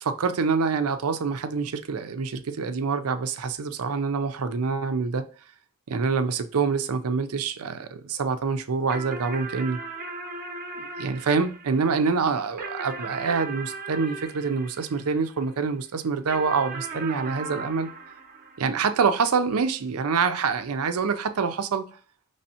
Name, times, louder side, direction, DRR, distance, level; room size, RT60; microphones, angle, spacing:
voice 1, 0.0-5.3 5.9-9.8 10.8-17.9 18.6-21.9, right 5 dB, 85° right, 0.5 m, -26 dB
sound 1, 8.9-15.6 16.3-19.1, right 3 dB, 40° right, 0.7 m, -38 dB
5.4 x 3.3 x 2.8 m
head